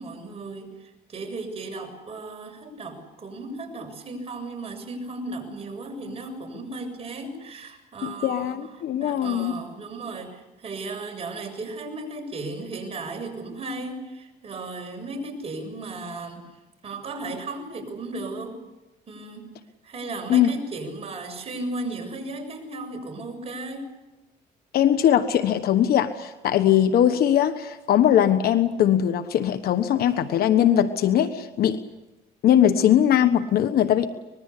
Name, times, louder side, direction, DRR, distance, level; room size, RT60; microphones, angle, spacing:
voice 1, 0.0-16.5 16.8-18.6 19.1-19.5 19.8-23.9, right 2 dB, 35° right, 4 dB, 7.0 m, -35 dB
voice 2, 8.0-9.5 20.3-20.5 24.7-31.8 32.4-34.1, left 10 dB, 65° left, 10 dB, 1.3 m, -20 dB
25.0 x 21.0 x 8.4 m, 1.0 s
cardioid pair, 110°, 17 cm